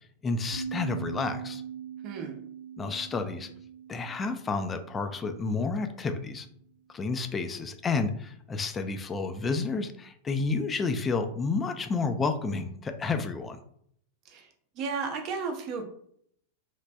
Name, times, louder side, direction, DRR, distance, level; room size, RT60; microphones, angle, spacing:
voice 1, 0.2-1.6 2.8-3.5 3.9-6.5 6.9-13.6, left 4 dB, 20° left, 8 dB, 0.3 m, -30 dB
sound 1, 0.5-5.7, right 8 dB, 75° left, 0.9 m, -41 dB
voice 2, 2.0-2.4 14.3-14.5 14.8-15.9, right 5 dB, 40° right, 4 dB, 0.6 m, -33 dB
3.1 x 2.5 x 2.2 m, 0.67 s
figure-of-eight pair, 95°, 0 cm